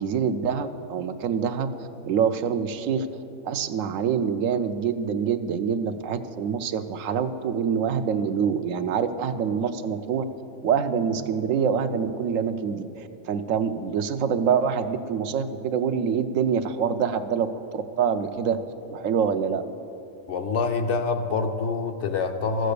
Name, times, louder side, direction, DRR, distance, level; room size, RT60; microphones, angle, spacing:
voice 1, 0.0-1.7 2.1-3.1 3.4-10.2 10.6-18.6 18.9-19.6, right 7 dB, 85° right, 9 dB, 1.0 m, -25 dB
voice 2, 20.3-22.7, left 4 dB, 65° left, 6 dB, 1.1 m, -26 dB
13.5 x 7.8 x 6.7 m, 2.8 s
omnidirectional pair, 1.3 m